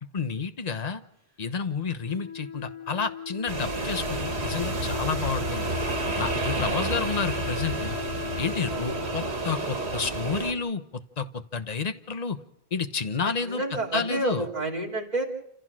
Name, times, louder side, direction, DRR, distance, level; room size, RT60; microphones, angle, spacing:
voice 1, 0.1-1.0 1.4-5.7 6.1-7.9 8.4-10.8 11.2-12.4 12.7-14.5, left 5 dB, 40° left, 10 dB, 1.1 m, -30 dB
Wind instrument woodwind instrument, 2.0-10.8, left 8 dB, 15° left, 3.1 m, -38 dB
sound 1, 3.5-10.5, right 3 dB, 80° right, 2.3 m, -30 dB
voice 2, 13.2-15.2, right 2 dB, 40° right, -1 dB, 3.2 m, -29 dB
28.5 x 15.5 x 6.2 m, 0.73 s
omnidirectional pair, 1.1 m